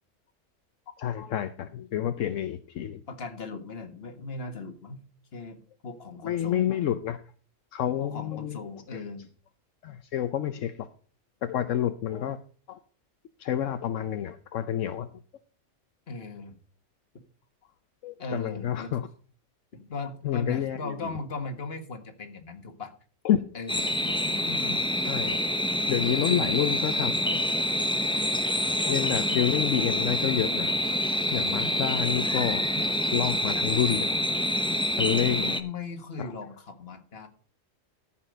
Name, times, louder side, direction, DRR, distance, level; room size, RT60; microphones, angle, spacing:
voice 1, 1.0-3.0 6.2-7.2 7.7-8.6 9.8-10.7 11.4-12.4 12.7-12.8 13.4-15.1 18.0-19.0 20.2-20.8 23.2-23.4 24.5-24.8 25.1-25.4 25.9-27.1 28.9-30.7 31.3-32.6 33.1-34.1 35.0-35.5, left 10 dB, 80° left, 10 dB, 1.0 m, -28 dB
voice 2, 3.1-5.0 5.3-6.7 8.0-9.3 16.1-16.6 18.2-19.1 19.7-22.9 23.5-24.0 24.3-24.4 26.2-26.6 35.4-37.3, left 3 dB, 50° left, 7 dB, 1.8 m, -38 dB
sound 1, 23.7-35.6, left 1 dB, 5° left, 0.6 m, -27 dB
14.0 x 5.8 x 5.1 m, 0.42 s
omnidirectional pair, 1.3 m